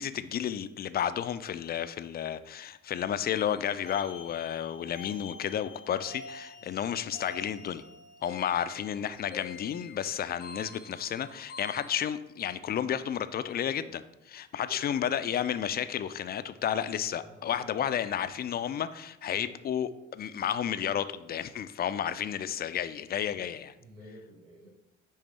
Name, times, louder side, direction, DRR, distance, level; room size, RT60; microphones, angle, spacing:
voice 1, 0.0-7.8 8.2-23.7, left 9 dB, 30° left, 12 dB, 0.3 m, -32 dB
sound 1, 3.3-12.0, left 4 dB, 90° left, 0.9 m, -47 dB
voice 2, 8.5-8.9 14.5-15.3 17.1-18.0 19.3-19.5 23.3-23.5 23.8-24.7, right 1 dB, 80° right, -3 dB, 1.3 m, -53 dB
10.0 x 3.4 x 3.2 m, 0.96 s
figure-of-eight pair, 45°, 36 cm